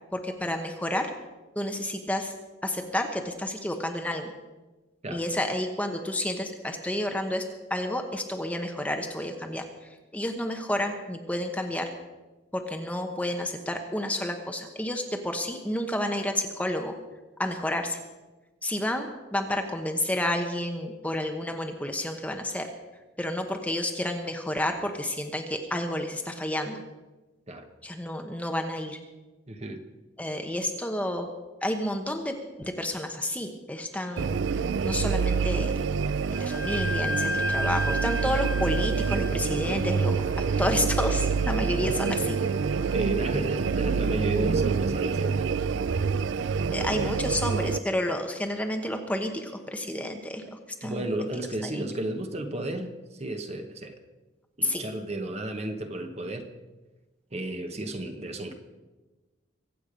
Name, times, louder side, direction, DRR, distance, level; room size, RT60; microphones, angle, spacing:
voice 1, 0.1-1.1 1.6-2.3 2.6-4.3 5.1-7.4 7.7-9.6 10.1-11.9 12.5-16.9 17.4-18.0 18.6-22.7 23.2-26.8 27.8-29.0 30.2-31.3 31.6-34.4 34.8-35.7 36.3-40.2 40.6-42.4 46.7-51.2 51.6-51.9 54.6-54.9, left 1 dB, 5° left, 4 dB, 1.0 m, -30 dB
voice 2, 29.5-29.8 39.7-39.8 42.9-45.5 47.0-47.2 50.8-53.9 54.6-56.5 57.3-58.5, right 1 dB, 35° right, 6 dB, 1.2 m, -33 dB
sound 1, 34.2-47.8, right 5 dB, 65° right, 0.4 m, -27 dB
Wind instrument woodwind instrument, 36.3-43.8, left 1 dB, 45° left, 1.3 m, -35 dB
24.0 x 8.4 x 5.1 m, 1.2 s
head